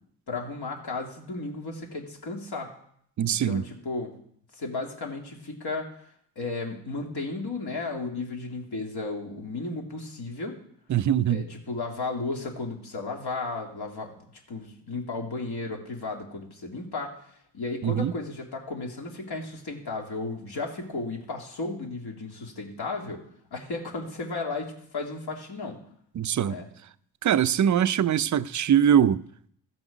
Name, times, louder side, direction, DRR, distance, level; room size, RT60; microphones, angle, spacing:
voice 1, 0.3-2.7 3.3-4.1 4.5-5.9 6.4-10.5 11.3-17.2 17.5-23.2 23.5-25.8 26.5-26.7, left 3 dB, 55° left, 2.8 m, -34 dB
voice 2, 3.2-3.6 10.9-11.5 17.8-18.1 26.2-26.6 27.2-29.2, right 9 dB, 40° right, 0.5 m, -22 dB
15.0 x 6.0 x 5.2 m
cardioid pair, 65°, 45 cm